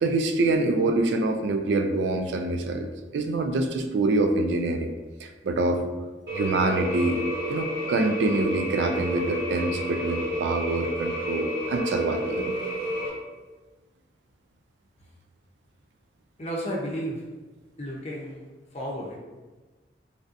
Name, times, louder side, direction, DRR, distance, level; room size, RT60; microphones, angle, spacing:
voice 1, 0.0-4.9 5.2-5.8 6.3-7.2 7.5-12.6, right 2 dB, 85° right, 5 dB, 0.3 m, -25 dB
sound 1, 6.3-13.1, equal, 70° right, 0.8 m, -30 dB
voice 2, 16.4-17.2 17.8-18.4 18.7-19.2, equal, 40° left, -3 dB, 0.6 m, -32 dB
3.3 x 2.7 x 2.5 m, 1.2 s
head